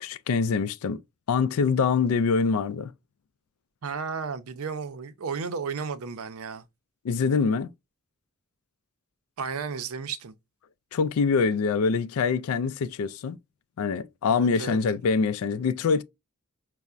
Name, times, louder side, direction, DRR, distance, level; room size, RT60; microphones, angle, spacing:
voice 1, 0.0-1.0 1.3-2.9 7.0-7.7 10.9-13.4 13.8-16.0, left 5 dB, 80° left, 0.3 m, -24 dB
voice 2, 3.8-6.6 9.4-10.3 14.3-14.8, right 5 dB, 85° right, 0.5 m, -33 dB
5.4 x 2.1 x 2.4 m
head